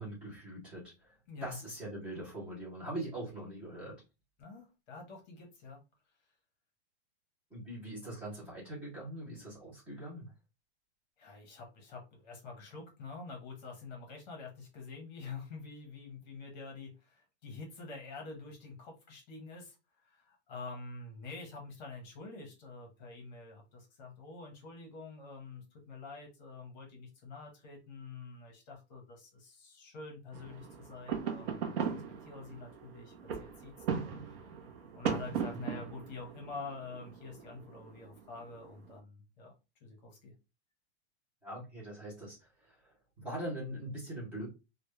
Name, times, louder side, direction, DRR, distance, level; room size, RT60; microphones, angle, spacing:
voice 1, 0.0-1.2 1.4-4.0 7.5-10.3 35.7-35.9 41.4-44.5, right 1 dB, 5° right, -7 dB, 0.3 m, -42 dB
voice 2, 4.4-5.8 11.2-19.8 20.0-31.8 32.2-34.4 34.9-39.5 39.8-40.3, left 3 dB, 40° left, 2 dB, 0.7 m, -47 dB
sound 1, 30.3-39.0, right 7 dB, 55° right, 0.6 m, -39 dB
2.1 x 2.0 x 2.9 m, 0.28 s
supercardioid pair, 160°, 35 cm